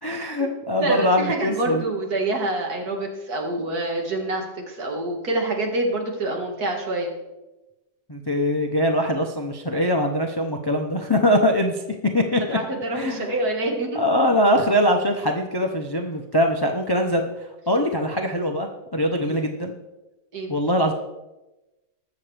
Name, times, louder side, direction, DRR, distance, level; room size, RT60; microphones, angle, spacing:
voice 1, 0.0-1.9 8.1-11.7 12.1-12.6 12.9-13.3 13.9-17.2 17.7-19.7 20.5-20.9, equal, 35° left, 3 dB, 0.4 m, -22 dB
voice 2, 0.8-7.1 12.5-14.0 19.2-19.4 20.3-20.5, right 2 dB, 65° right, 1 dB, 2.3 m, -26 dB
20.5 x 7.2 x 3.4 m, 1.0 s
omnidirectional pair, 1.8 m